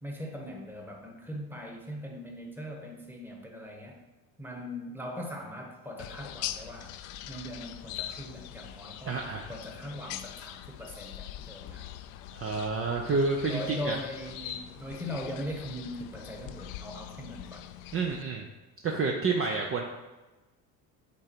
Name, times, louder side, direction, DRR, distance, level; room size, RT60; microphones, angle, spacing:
voice 1, 0.0-4.0 4.4-6.9 7.3-9.2 9.5-11.9 13.5-17.6 17.9-18.1, equal, 5° right, 1 dB, 1.4 m, -40 dB
sound 1, 6.0-18.2, left 12 dB, 85° left, 0.6 m, -42 dB
voice 2, 9.1-9.5 12.3-14.0 17.9-18.5 18.8-19.8, right 4 dB, 35° right, 1 dB, 0.7 m, -29 dB
8.5 x 3.9 x 4.5 m, 1.1 s
supercardioid pair, 100°, 41 cm